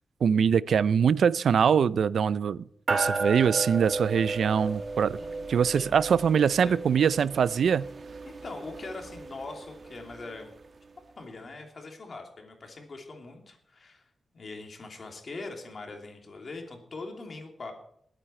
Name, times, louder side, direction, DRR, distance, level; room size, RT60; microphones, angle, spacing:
voice 1, 0.2-2.6 2.9-5.2 5.5-7.9, right 7 dB, 80° right, 19 dB, 0.4 m, -23 dB
sound 1, 2.9-10.6, right 3 dB, 45° right, 1.4 m, -34 dB
voice 2, 6.2-6.7 8.2-10.5 11.2-14.1 14.3-17.7, left 3 dB, 45° left, 3 dB, 2.9 m, -42 dB
20.5 x 9.0 x 4.3 m, 0.71 s
wide cardioid pair, 115°, 0 cm